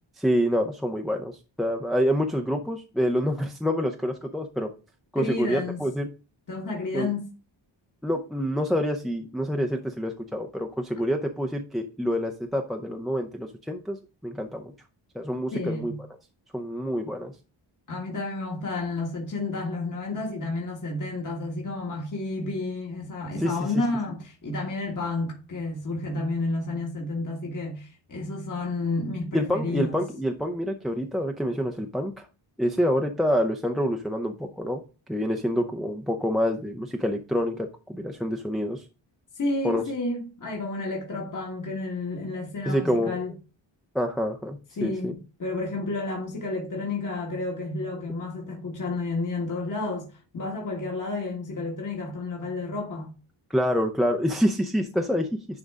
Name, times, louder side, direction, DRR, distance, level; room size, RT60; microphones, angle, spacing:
voice 1, 0.2-4.7 5.1-6.1 6.9-7.1 8.0-14.0 14.2-14.7 15.1-15.9 16.5-17.3 23.4-23.6 29.3-32.3 32.6-34.8 35.1-38.8 39.6-39.8 42.7-43.1 43.9-45.1 53.5-55.3, equal, ahead, 0.6 m, -27 dB
voice 2, 5.2-5.8 6.5-7.3 15.5-16.0 17.9-30.0 39.3-43.3 44.8-50.1 50.3-53.1, left 2 dB, 40° left, 1.7 m, -31 dB
10.5 x 3.8 x 3.6 m
wide cardioid pair, 160°, 48 cm